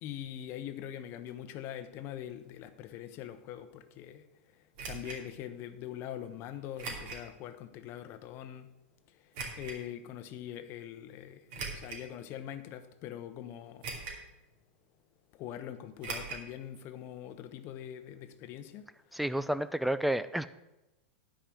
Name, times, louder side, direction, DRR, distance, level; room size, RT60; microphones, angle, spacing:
voice 1, 0.0-4.2 4.8-8.7 9.5-13.9 15.3-18.9, left 10 dB, 40° left, 0.9 m, -43 dB
sound 1, 4.7-5.2 6.8-7.3 7.8-7.9 9.3-9.8 11.5-12.1 12.7-12.8 13.8-14.3 14.6-14.7 16.0-16.5 16.7-16.8 17.1-17.2, right 4 dB, 55° right, 2.6 m, -40 dB
voice 2, 19.1-20.5, right 1 dB, ahead, 0.4 m, -30 dB
10.0 x 5.1 x 7.6 m
hypercardioid pair, 125°, 6 cm